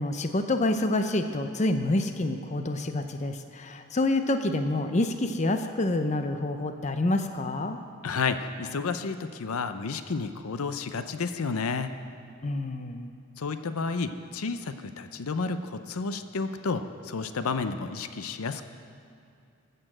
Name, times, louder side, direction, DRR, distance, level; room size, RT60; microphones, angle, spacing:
voice 1, 0.0-7.8 12.4-13.1, left 2 dB, 35° left, 7 dB, 0.6 m, -27 dB
voice 2, 8.0-11.9 13.4-18.6, left 4 dB, 85° left, 10 dB, 0.6 m, -31 dB
14.5 x 6.8 x 7.5 m, 2.4 s
head